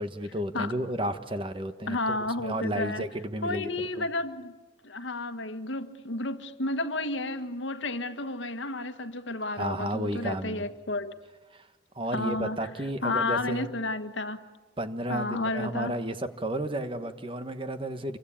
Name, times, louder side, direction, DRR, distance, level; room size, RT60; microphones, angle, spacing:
voice 1, 0.0-3.7 4.0-4.1 9.5-10.7 11.5-11.7 11.9-13.7 14.8-18.2, right 1 dB, 25° right, 1.3 m, -32 dB
voice 2, 1.9-3.0 3.4-4.5 4.8-11.1 12.1-12.7 13.0-14.4 15.1-16.0, left 2 dB, 80° left, 1.6 m, -31 dB
28.0 x 24.0 x 8.7 m
head